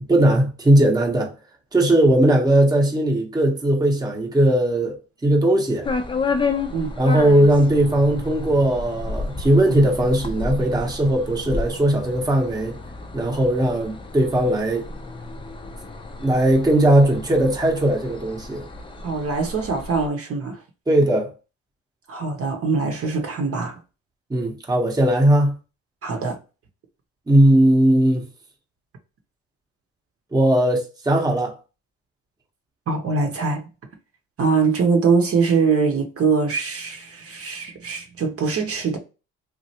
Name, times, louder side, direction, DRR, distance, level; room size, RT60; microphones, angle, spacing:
voice 1, 0.1-1.3 1.7-5.0 5.2-5.9 7.0-12.8 13.1-14.8 16.2-18.6 20.9-21.3 24.3-25.5 27.3-28.2 30.3-31.5, right 1 dB, 15° right, 0.8 m, -18 dB
sound 1, 5.8-20.1, left 3 dB, 15° left, 0.4 m, -31 dB
voice 2, 19.0-20.6 22.1-23.8 26.0-26.4 32.9-33.6 34.4-39.0, right 4 dB, 50° right, 0.8 m, -22 dB
3.1 x 2.5 x 2.7 m
cardioid pair, 90°, 30 cm